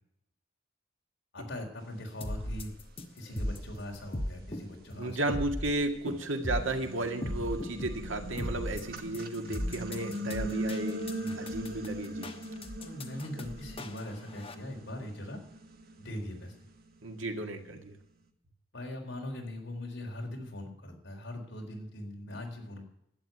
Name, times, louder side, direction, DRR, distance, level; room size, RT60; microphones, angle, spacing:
voice 1, 1.3-2.7 3.1-5.2 6.1-6.2 8.4-8.5 9.4-9.6 9.9-10.1 11.2-11.4 12.8-15.4 16.0-16.5 17.7-17.8 18.7-22.8, left 1 dB, 65° left, 1 dB, 4.0 m, -41 dB
sound 1, 2.2-14.5, left 1 dB, 30° left, 1.1 m, -37 dB
sound 2, 2.6-2.7 3.3-5.6 6.1-17.4, right 1 dB, 50° right, 1.5 m, -41 dB
voice 2, 5.0-11.0 11.4-12.3 17.0-18.0, right 2 dB, 85° right, 4 dB, 1.9 m, -34 dB
12.0 x 9.0 x 9.2 m, 0.78 s
head